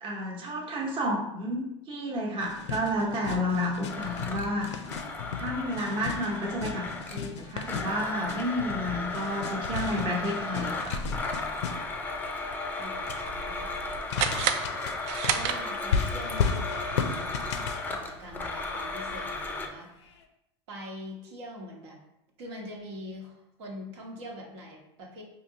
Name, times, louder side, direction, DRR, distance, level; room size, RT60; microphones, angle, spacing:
voice 1, 0.0-4.8 5.4-6.9 7.1-11.0, equal, 35° right, -2 dB, 0.9 m, -31 dB
sound 1, 2.4-12.1 12.8-13.2 14.0-18.6 20.1-20.2, left 6 dB, 90° left, 0.5 m, -35 dB
Domestic sounds home sounds, 3.9-7.3 7.7-19.7, left 3 dB, 15° left, 0.4 m, -35 dB
voice 2, 12.8-13.7 15.2-17.4 17.9-19.9 20.7-22.0 22.4-25.2, equal, 75° right, -1 dB, 1.0 m, -43 dB
sound 2, 14.1-16.1, right 8 dB, 55° right, 0.4 m, -30 dB
4.3 x 2.7 x 2.7 m, 0.82 s
supercardioid pair, 115°, 14 cm